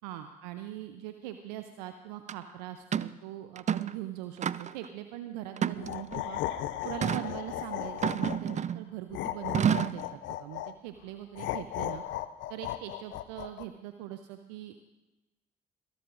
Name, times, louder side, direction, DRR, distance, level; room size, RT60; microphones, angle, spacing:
voice 1, 0.0-6.4 6.8-12.0 12.5-14.8, right 13 dB, 80° right, 8 dB, 0.6 m, -41 dB
sound 1, 2.3-2.4 2.9-3.1 3.6-4.0 4.4-4.9 5.6-6.2 7.0-7.3 8.0-8.9 9.5-10.0, right 8 dB, 35° right, 0.5 m, -29 dB
sound 2, 5.7-8.6 9.1-10.7 11.4-13.6, left 13 dB, 65° left, 0.6 m, -36 dB
22.5 x 12.5 x 2.5 m, 1.1 s
hypercardioid pair, 50°, 21 cm